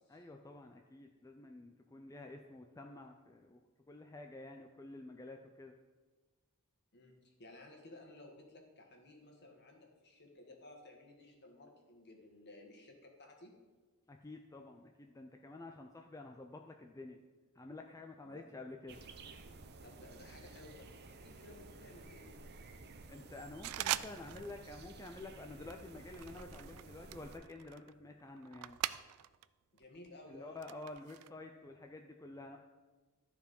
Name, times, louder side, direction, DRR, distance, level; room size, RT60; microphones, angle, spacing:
voice 1, 0.1-3.6 3.9-5.7 14.1-17.2 17.6-19.0 23.1-28.8 30.3-32.6, left 2 dB, 15° left, 3 dB, 0.4 m, -50 dB
voice 2, 6.9-13.6 18.2-18.4 19.8-22.3 29.7-31.0, left 2 dB, 50° left, 2 dB, 1.7 m, -56 dB
sound 1, 18.9-27.4, right 3 dB, 50° right, 0.7 m, -54 dB
sound 2, 23.6-24.6 24.8-25.2 25.7-29.4 29.8-31.3, right 13 dB, 90° right, 0.3 m, -42 dB
13.0 x 4.7 x 5.3 m, 1.3 s
head